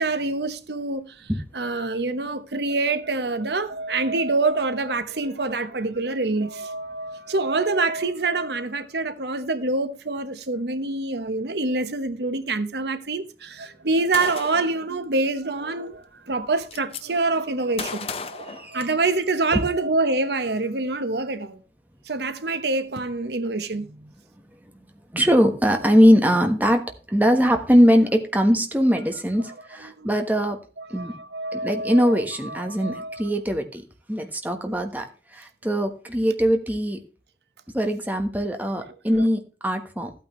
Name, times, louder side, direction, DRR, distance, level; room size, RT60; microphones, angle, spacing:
voice 1, 0.0-21.6 22.1-24.1 30.0-30.1 30.4-33.2 34.7-34.8 39.1-39.3, right 3 dB, 75° right, 1.0 m, -26 dB
Gunshot gunfire, 14.1-14.8 15.9-16.0 16.3-17.0 17.8-19.3, left 5 dB, 35° left, 0.8 m, -34 dB
voice 2, 18.5-18.9 19.5-19.6 24.6-24.7 25.1-30.6 30.9-31.1 31.5-37.0 37.7-40.1, equal, 10° right, 1.2 m, -21 dB
13.5 x 9.0 x 3.1 m
head